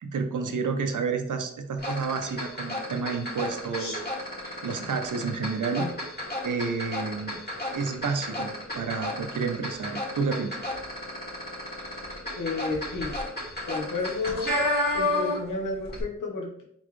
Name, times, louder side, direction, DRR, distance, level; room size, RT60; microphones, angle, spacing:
voice 1, 0.0-5.9 6.4-7.4 7.7-10.6, right 5 dB, 75° right, 6 dB, 0.7 m, -30 dB
sound 1, 1.8-15.6 15.8-16.0, left 1 dB, 30° left, 1.8 m, -32 dB
voice 2, 12.4-13.1 13.7-14.6 14.9-16.6, left 3 dB, 85° left, 0 dB, 1.1 m, -31 dB
4.0 x 4.0 x 3.1 m, 0.70 s
wide cardioid pair, 75°, 31 cm